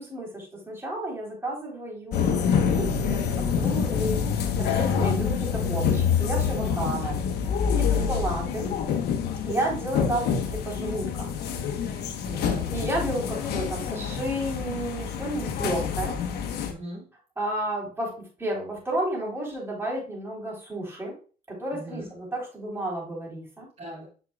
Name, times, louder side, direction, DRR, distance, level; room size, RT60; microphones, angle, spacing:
voice 1, 0.0-7.2 7.6-8.7 9.4-11.3 12.7-16.2 17.4-21.2 21.5-23.7, right 1 dB, 15° right, -3 dB, 3.6 m, -32 dB
sound 1, 2.1-16.7, left 7 dB, 75° left, 1.0 m, -27 dB
voice 2, 6.6-7.0 7.7-8.1 12.2-12.8 16.7-17.0 21.7-22.1 23.8-24.1, right 1 dB, 40° right, -5 dB, 2.6 m, -39 dB
8.1 x 5.1 x 2.3 m, 0.37 s
cardioid pair, 110°, 17 cm